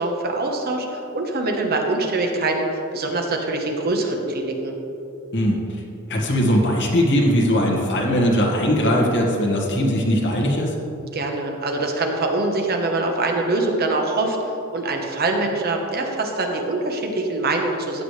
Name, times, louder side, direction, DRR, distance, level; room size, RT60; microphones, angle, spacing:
voice 1, 0.0-4.7 11.1-18.0, right 2 dB, 45° right, 2 dB, 1.1 m, -24 dB
voice 2, 6.1-10.7, equal, 55° left, -2 dB, 1.8 m, -20 dB
15.0 x 8.3 x 3.3 m, 2.7 s
head